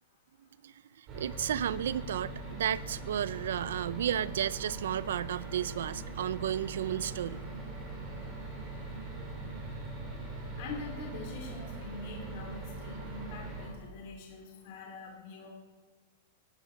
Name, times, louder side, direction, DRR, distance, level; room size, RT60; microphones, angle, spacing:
voice 1, 0.6-7.4, right 10 dB, 75° right, 19 dB, 0.5 m, -33 dB
sound 1, 1.1-13.7, right 2 dB, 20° right, 3.5 m, -41 dB
voice 2, 10.6-15.5, left 3 dB, 40° left, 0 dB, 2.9 m, -44 dB
17.5 x 11.0 x 5.1 m, 1.4 s
supercardioid pair, 180°, 0 cm